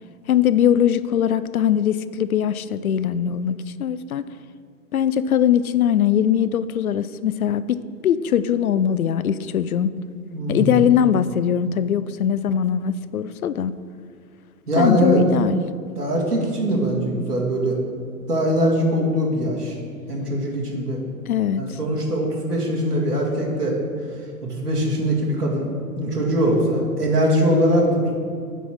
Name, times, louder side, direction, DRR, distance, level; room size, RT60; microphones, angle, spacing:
voice 1, 0.3-4.2 4.9-9.9 10.5-13.8 14.7-15.6 21.3-21.8, left 9 dB, 70° left, 15 dB, 0.5 m, -21 dB
voice 2, 10.3-10.8 14.7-15.2 16.0-17.8 18.3-19.8 20.1-21.0 21.6-23.8 24.4-28.3, equal, 85° right, -2 dB, 2.1 m, -22 dB
8.9 x 4.2 x 6.3 m, 2.2 s
figure-of-eight pair, 115°, 45 cm